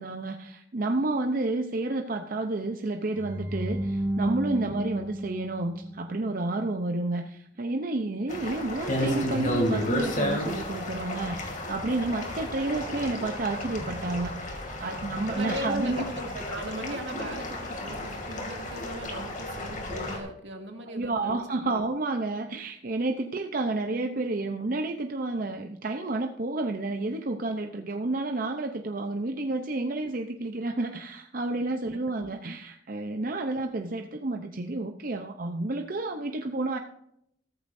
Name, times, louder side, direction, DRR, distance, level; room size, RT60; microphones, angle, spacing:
voice 1, 0.0-16.0 20.9-36.8, right 2 dB, 50° right, 4 dB, 0.7 m, -30 dB
sound 1, 3.2-6.4, right 1 dB, 10° right, 0.9 m, -32 dB
sound 2, 8.3-20.2, left 1 dB, 45° left, 2.5 m, -32 dB
voice 2, 15.3-21.4 21.7-21.8, right 1 dB, 80° right, 2 dB, 2.4 m, -38 dB
15.0 x 13.5 x 2.7 m, 0.74 s
head